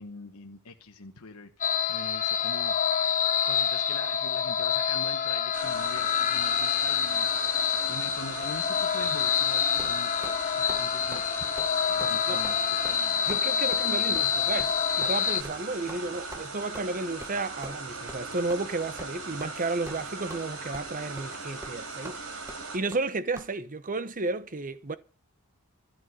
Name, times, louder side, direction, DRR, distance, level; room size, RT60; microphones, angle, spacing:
voice 1, 0.0-3.0 3.4-10.1 10.4-11.6 11.9-12.5 12.8-13.3 15.9-16.1, left 3 dB, 85° left, 1.3 m, -44 dB
sound 1, 1.6-15.4, left 8 dB, 35° left, 1.1 m, -27 dB
sound 2, 5.5-22.8, right 3 dB, 70° right, 4.3 m, -39 dB
sound 3, 9.8-10.4 10.7-10.8 11.1-11.3 11.6-11.7 12.0-12.1 12.4-12.6 12.8-13.0 13.3-13.4 13.7-13.8 14.2-14.3 14.6-14.7 15.0-15.2 15.4-15.6 15.9-16.0 16.3-16.4 16.7-16.8 17.2-17.4 17.6-17.8 18.1-18.2 18.5-18.6 19.0-19.1 19.4-19.6 19.9-20.4 20.7-20.9 21.2-21.3 21.6-21.8 22.0-22.2 22.5-22.6 22.9-23.0 23.4-23.5, right 1 dB, 15° right, 1.2 m, -43 dB
voice 2, 12.0-12.4 13.3-22.2 22.7-25.0, right 3 dB, 40° right, 1.0 m, -32 dB
14.0 x 6.3 x 9.6 m
head